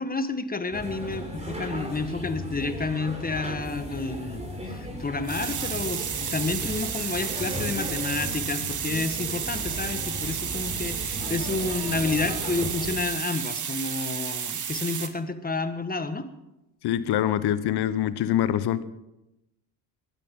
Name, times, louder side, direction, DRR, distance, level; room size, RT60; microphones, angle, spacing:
voice 1, 0.0-16.3, left 3 dB, 15° left, 10 dB, 1.5 m, -30 dB
sound 1, 0.7-13.0, equal, 15° right, 5.8 m, -36 dB
sound 2, 5.2-15.1, right 8 dB, 35° right, 1.7 m, -32 dB
voice 2, 16.8-18.8, left 11 dB, 50° left, 15 dB, 1.1 m, -24 dB
21.0 x 15.0 x 3.9 m, 0.92 s
hypercardioid pair, 60°, 50 cm